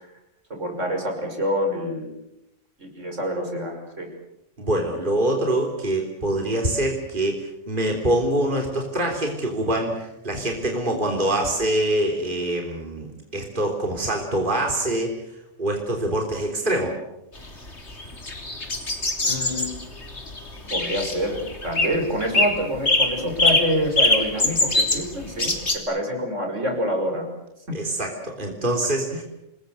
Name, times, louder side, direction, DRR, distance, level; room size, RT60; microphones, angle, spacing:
voice 1, 0.5-2.1 2.8-4.1 19.2-19.7 20.7-25.6 25.9-27.2, equal, 75° right, 3 dB, 6.2 m, -26 dB
voice 2, 4.6-13.1 13.3-15.1 15.6-16.9 27.7-29.2, right 1 dB, 40° right, 1 dB, 3.7 m, -24 dB
sound 1, 17.4-25.8, left 2 dB, 60° left, 3.6 m, -23 dB
28.5 x 20.5 x 8.1 m, 0.87 s
omnidirectional pair, 1.3 m